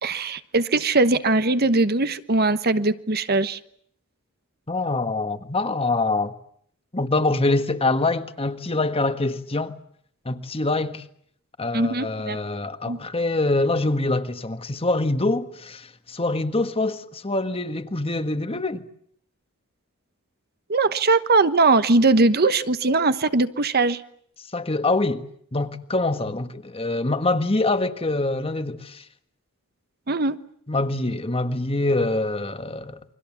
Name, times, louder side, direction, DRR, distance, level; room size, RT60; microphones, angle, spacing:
voice 1, 0.0-3.6 11.7-12.4 12.9-13.0 20.7-24.0 30.1-30.4, right 3 dB, 45° right, 1.1 m, -20 dB
voice 2, 4.7-6.3 6.9-9.8 10.2-11.0 11.6-18.8 24.5-25.2 25.5-29.1 30.7-33.0, left 2 dB, 25° left, 1.5 m, -25 dB
29.5 x 24.0 x 7.3 m
head